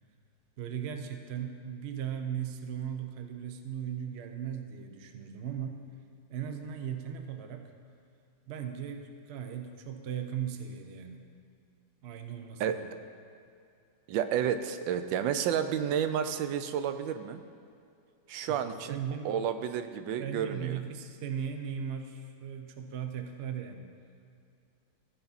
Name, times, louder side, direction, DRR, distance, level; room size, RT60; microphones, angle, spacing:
voice 1, 0.6-5.8 6.3-7.7 8.5-11.3 12.0-12.9 18.5-19.4 20.2-23.9, right 8 dB, 65° right, 6 dB, 0.6 m, -38 dB
voice 2, 14.1-17.4 18.3-19.0 19.2-20.8, right 8 dB, 85° right, 9 dB, 1.3 m, -31 dB
15.0 x 5.8 x 4.0 m, 2.5 s
omnidirectional pair, 2.0 m